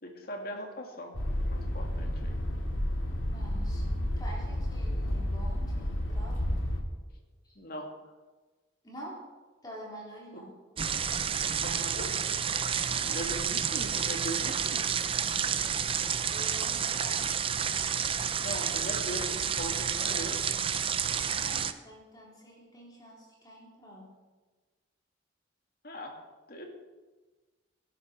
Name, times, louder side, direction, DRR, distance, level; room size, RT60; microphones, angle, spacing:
voice 1, 0.0-2.4 7.6-7.9 10.3-10.4 11.6-12.1 13.1-14.8 18.4-20.4 25.8-26.1 26.5-26.7, equal, 50° left, 2 dB, 2.3 m, -40 dB
sound 1, 1.1-6.8, equal, 85° left, 2.2 m, -31 dB
voice 2, 3.3-6.4 7.4-7.5 8.8-9.2 9.6-10.5 12.8-13.2 16.3-17.3 21.4-24.1, equal, 20° left, -4 dB, 4.0 m, -47 dB
sound 2, 10.8-21.7, right 7 dB, 25° right, 0.5 m, -30 dB
18.0 x 11.5 x 4.6 m, 1.3 s
head